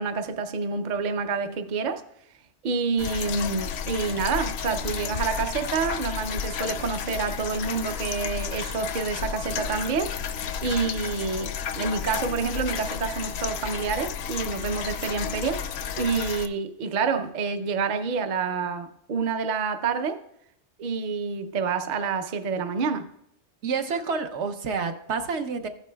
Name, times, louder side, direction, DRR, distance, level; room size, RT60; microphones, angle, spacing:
voice 1, 0.0-2.0 2.6-10.1 10.6-15.6 16.0-20.2 20.8-23.1, right 5 dB, 50° right, 8 dB, 0.6 m, -28 dB
sound 1, 3.0-16.5, left 7 dB, 70° left, 0.8 m, -32 dB
voice 2, 23.6-25.7, right 5 dB, 70° right, 6 dB, 1.0 m, -28 dB
15.0 x 9.2 x 2.2 m, 0.75 s
omnidirectional pair, 1.2 m